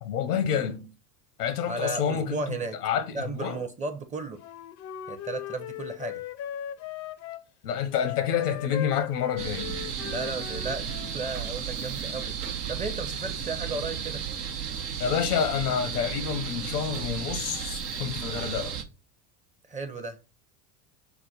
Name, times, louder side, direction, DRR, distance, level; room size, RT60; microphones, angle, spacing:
voice 1, 0.0-0.8 1.4-2.6 2.8-3.6 7.6-9.7 15.0-18.8, left 8 dB, 85° left, 0.8 m, -28 dB
voice 2, 1.7-2.8 3.1-4.4 5.1-6.2 10.0-12.3 12.7-14.2 19.6-20.2, right 3 dB, 15° right, 0.5 m, -34 dB
Wind instrument woodwind instrument, 4.4-7.5 7.9-11.2, left 12 dB, 40° left, 0.4 m, -38 dB
sound 1, 9.4-18.8, right 7 dB, 85° right, 0.8 m, -34 dB
5.9 x 2.1 x 4.0 m
hypercardioid pair, 85°, 45 cm